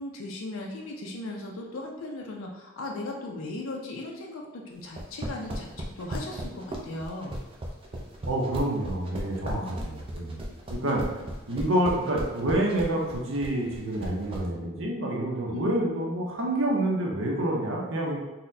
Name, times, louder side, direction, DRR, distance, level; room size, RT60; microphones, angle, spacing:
voice 1, 0.0-7.4 9.5-9.7 15.5-15.7, left 2 dB, 85° left, 0 dB, 0.4 m, -37 dB
sound 1, 4.9-14.5, right 1 dB, 25° right, 0.4 m, -35 dB
voice 2, 8.2-10.4 10.7-11.1 11.5-18.2, right 1 dB, 75° right, -1 dB, 0.7 m, -28 dB
4.0 x 2.1 x 2.6 m, 1.1 s
head